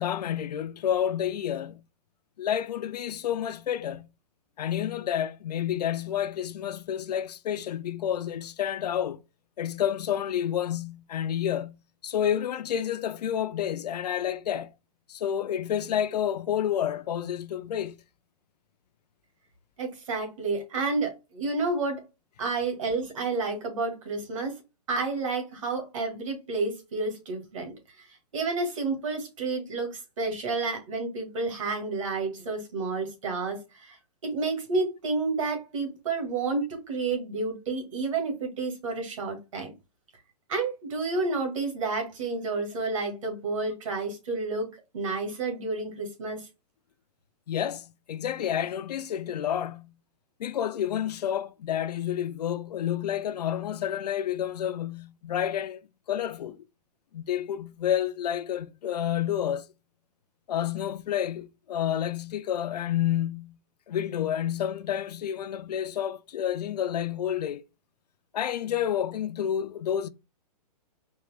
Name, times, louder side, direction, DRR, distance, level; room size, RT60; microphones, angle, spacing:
voice 1, 0.0-1.8 2.4-4.1 4.6-9.2 9.6-14.7 15.1-18.0 47.5-49.9 50.4-56.6 57.1-59.7 60.5-63.6 63.9-67.6 68.3-70.1, left 10 dB, 75° left, 0.5 m, -29 dB
voice 2, 19.8-22.0 22.4-24.6 24.9-28.1 28.3-34.0 34.2-39.7 40.5-44.7 44.9-46.5, right 3 dB, 50° right, 1.8 m, -30 dB
4.4 x 2.7 x 3.4 m
hypercardioid pair, 175°, 21 cm